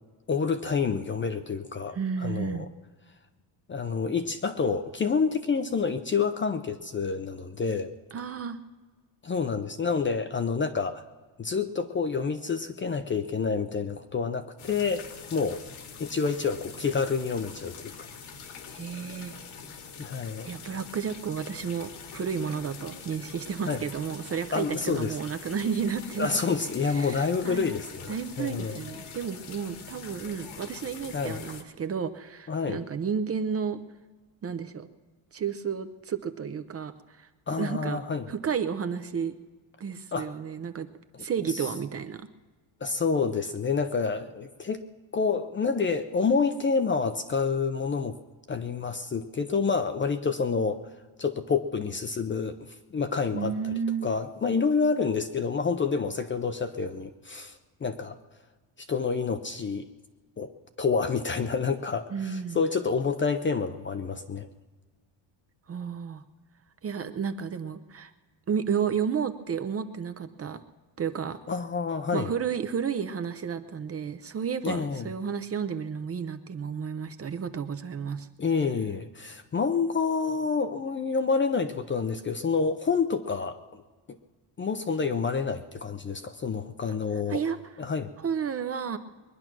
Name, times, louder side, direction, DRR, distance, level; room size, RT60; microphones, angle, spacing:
voice 1, 0.3-2.7 3.7-7.9 9.2-11.0 11.4-15.0 15.3-15.6 16.0-18.1 20.0-20.5 23.6-23.8 24.5-25.2 26.2-28.8 31.1-31.4 32.5-32.8 37.5-38.2 40.1-40.3 41.1-41.2 42.8-44.8 45.1-48.2 48.5-50.8 51.2-53.7 54.0-58.2 58.9-59.8 60.4-60.5 60.8-64.5 71.5-72.3 74.6-75.1 78.4-83.8 84.6-87.4 87.8-88.1, left 5 dB, 25° left, 9 dB, 0.5 m, -28 dB
voice 2, 1.9-2.7 8.1-8.6 18.7-19.3 20.5-26.4 26.9-27.7 28.1-33.8 34.4-34.9 35.3-37.3 37.6-38.0 38.3-39.3 39.8-40.9 41.2-42.3 53.3-54.1 62.1-62.6 65.7-66.2 66.8-68.1 68.5-70.6 71.0-71.4 72.1-78.3 87.3-87.6 88.2-89.0, right 7 dB, 30° right, 9 dB, 0.6 m, -32 dB
sound 1, 14.6-31.6, left 6 dB, 75° left, 2.0 m, -44 dB
22.0 x 10.5 x 6.1 m, 1.4 s
cardioid pair, 160°, 50 cm